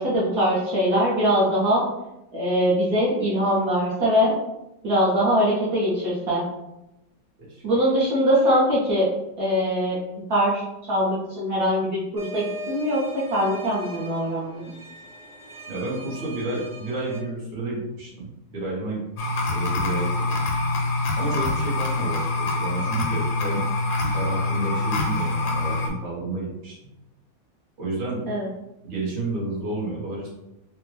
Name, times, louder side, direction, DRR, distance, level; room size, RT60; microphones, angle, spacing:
voice 1, 0.0-1.8 2.3-4.4 4.8-6.4 7.6-9.1 9.4-10.0 10.3-14.6 28.3-28.5, equal, 60° right, -7 dB, 1.3 m, -22 dB
sound 1, 12.2-17.2, equal, 5° right, 0.8 m, -39 dB
voice 2, 15.7-20.1 21.1-23.6 24.0-26.7 27.8-28.2 28.8-30.3, right 2 dB, 35° right, -7 dB, 1.0 m, -31 dB
sound 2, 19.2-25.9, left 2 dB, 75° left, 1.3 m, -25 dB
3.4 x 2.1 x 3.2 m, 0.89 s
omnidirectional pair, 2.0 m